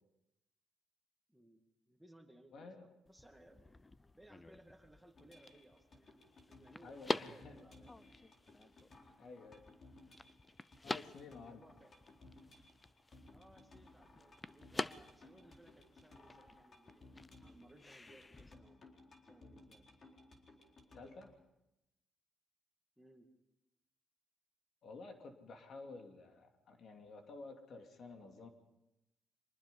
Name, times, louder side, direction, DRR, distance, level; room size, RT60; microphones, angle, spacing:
voice 1, 1.3-1.6 1.9-3.7 4.1-8.0 11.3-12.0 13.3-18.8 19.2-19.8 23.0-23.3, right 1 dB, 5° right, 4 dB, 2.2 m, -63 dB
voice 2, 2.5-2.9 6.8-7.6 9.2-9.6 10.8-11.6 20.9-21.3 24.8-28.5, left 3 dB, 60° left, 4 dB, 2.7 m, -52 dB
sound 1, 3.1-18.5, left 2 dB, 20° left, 0.6 m, -47 dB
sound 2, 5.2-21.3, left 2 dB, 40° left, 4.2 m, -61 dB
25.0 x 20.0 x 5.5 m, 0.91 s
cardioid pair, 90°, 0 cm